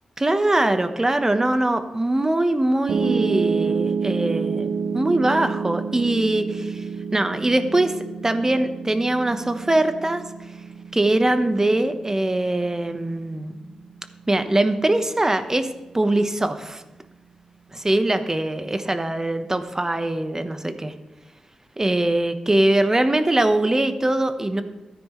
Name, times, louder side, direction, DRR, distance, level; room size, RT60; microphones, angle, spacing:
voice 1, 0.2-6.8 7.1-7.9 8.2-10.2 10.9-13.6 14.3-15.7 15.9-16.8 17.7-20.9 21.8-24.6, right 1 dB, 25° right, 9 dB, 1.1 m, -22 dB
Piano, 2.9-15.1, right 5 dB, 80° right, 0.5 m, -29 dB
13.5 x 9.8 x 3.2 m, 1.0 s
supercardioid pair, 45°, 2 cm